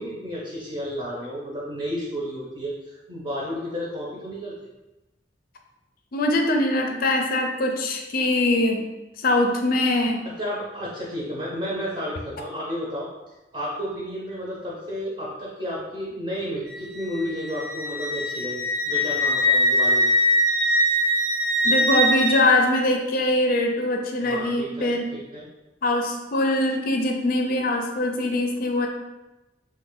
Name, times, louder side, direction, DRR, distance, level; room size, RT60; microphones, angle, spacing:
voice 1, 0.0-4.5 10.4-13.1 13.5-20.1 24.2-24.9 25.3-25.5, equal, 30° right, -5 dB, 0.7 m, -32 dB
voice 2, 6.1-8.8 9.2-10.2 21.6-25.1 25.8-28.9, left 1 dB, 55° left, 3 dB, 0.4 m, -22 dB
Wind instrument woodwind instrument, 16.7-22.4, equal, 85° right, 0.7 m, -22 dB
3.0 x 2.2 x 3.7 m, 1.0 s
head